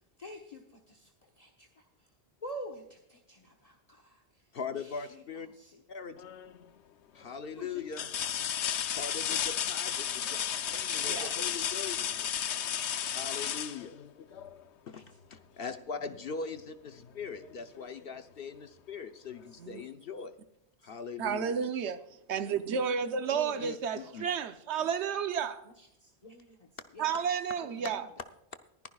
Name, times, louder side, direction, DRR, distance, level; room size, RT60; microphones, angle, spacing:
voice 1, 0.2-1.8 2.4-4.2 4.8-5.2 5.5-5.8 7.5-7.8 9.0-9.6 14.9-15.0 23.3-23.6 24.0-24.1 25.8-26.7 26.9-27.3 27.6-28.1, equal, 35° left, 1.2 m, -47 dB
voice 2, 4.5-5.5 5.9-6.2 7.1-8.1 8.9-10.3 10.7-12.1 13.1-13.9 14.9-15.0 15.3-20.3 20.8-21.6 23.6-24.3, left 5 dB, 60° left, 0.9 m, -41 dB
sound 1, 6.2-6.7 7.2-7.3 7.9-14.6 16.4-16.5 17.0-18.0 19.3-19.4, left 9 dB, 90° left, 1.0 m, -33 dB
voice 3, 21.2-22.0 22.3-25.6 27.0-28.1, right 7 dB, 90° right, 1.0 m, -32 dB
21.0 x 10.5 x 2.3 m
omnidirectional pair, 1.1 m